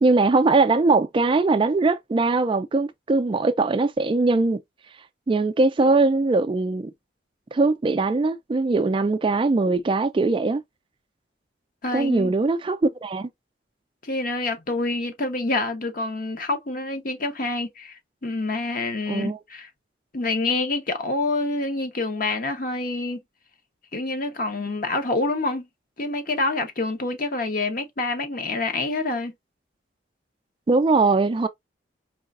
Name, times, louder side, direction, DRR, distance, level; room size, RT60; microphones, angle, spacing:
voice 1, 0.0-4.6 5.3-6.9 7.5-10.6 11.9-13.3 19.1-19.4 30.7-31.5, right 3 dB, 25° right, 0.3 m, -21 dB
voice 2, 11.8-12.3 14.0-19.7 20.1-23.2 23.9-25.7 26.0-29.3, left 2 dB, 50° left, 1.0 m, -27 dB
4.7 x 3.3 x 2.4 m
head